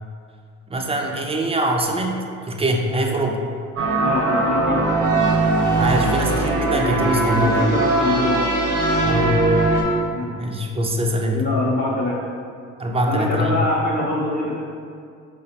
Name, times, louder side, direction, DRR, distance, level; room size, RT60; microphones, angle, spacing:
voice 1, 0.7-3.4 5.8-7.6 9.0-9.5 10.2-11.4 12.8-13.5, right 1 dB, 15° right, 1 dB, 0.4 m, -23 dB
sound 1, 3.8-9.8, right 2 dB, 65° right, 0.7 m, -20 dB
voice 2, 4.0-4.9 7.3-8.4 10.0-10.4 11.3-12.2 13.1-14.6, left 2 dB, 30° left, -5 dB, 0.6 m, -24 dB
4.7 x 2.0 x 2.8 m, 2.3 s
hypercardioid pair, 55°, 34 cm